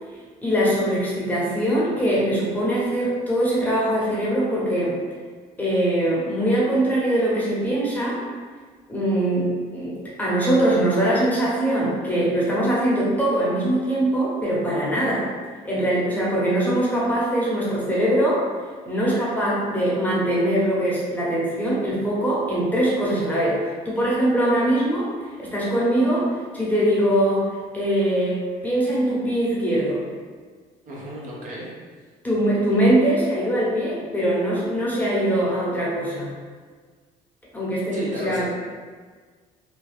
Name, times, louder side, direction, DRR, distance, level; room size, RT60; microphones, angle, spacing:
voice 1, 0.4-4.9 5.6-8.2 8.9-15.3 15.6-18.4 18.9-25.1 25.4-26.3 26.5-27.4 27.7-30.0 32.2-36.3 37.5-38.4, right 1 dB, 10° left, -7 dB, 0.8 m, -22 dB
voice 2, 30.9-31.7 37.9-38.4, equal, 50° right, -5 dB, 0.8 m, -33 dB
2.8 x 2.2 x 3.3 m, 1.5 s
cardioid pair, 110°, 17 cm